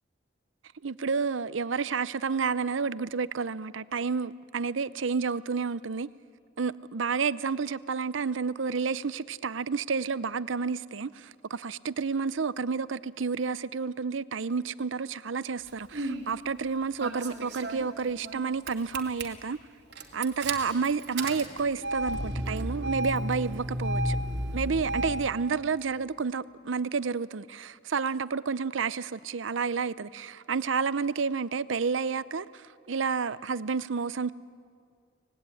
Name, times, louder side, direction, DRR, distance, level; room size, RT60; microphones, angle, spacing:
voice 1, 0.8-6.1 6.6-19.6 20.1-24.2 24.5-34.3, right 5 dB, 90° right, 0.6 m, -30 dB
Engine starting, 15.7-16.2 17.0-18.4 18.7-19.2 19.9-25.2, right 1 dB, 60° right, 2.6 m, -32 dB
25.0 x 19.0 x 9.8 m
head